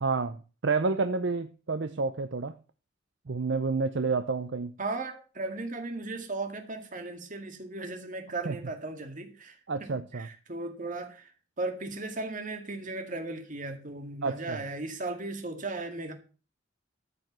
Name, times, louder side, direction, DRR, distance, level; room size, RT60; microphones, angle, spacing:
voice 1, 0.0-2.6 3.3-4.7 8.5-8.6 9.7-10.3 14.2-14.6, right 4 dB, 60° right, 0.7 m, -29 dB
voice 2, 4.8-9.6 10.1-11.3 11.6-16.1, right 2 dB, 40° right, 2.0 m, -36 dB
14.0 x 5.2 x 7.4 m
head